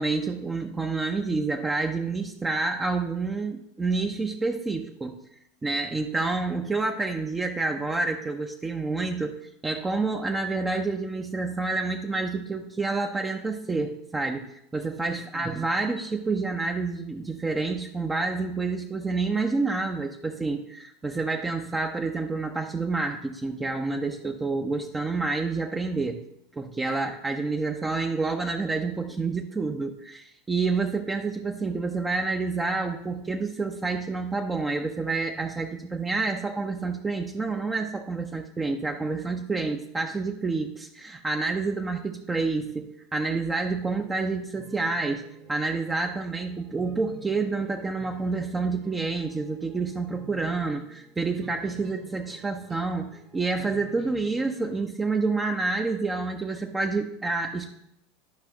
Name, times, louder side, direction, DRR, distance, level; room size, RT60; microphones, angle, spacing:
voice 1, 0.0-5.2 5.6-26.2 26.6-42.9 43.1-45.2 45.5-57.7, right 3 dB, 15° right, 3 dB, 0.6 m, -28 dB
sound 1, 43.8-54.8, right 7 dB, 40° right, 1.3 m, -51 dB
11.5 x 5.3 x 2.9 m, 0.79 s
hypercardioid pair, 85°, 0 cm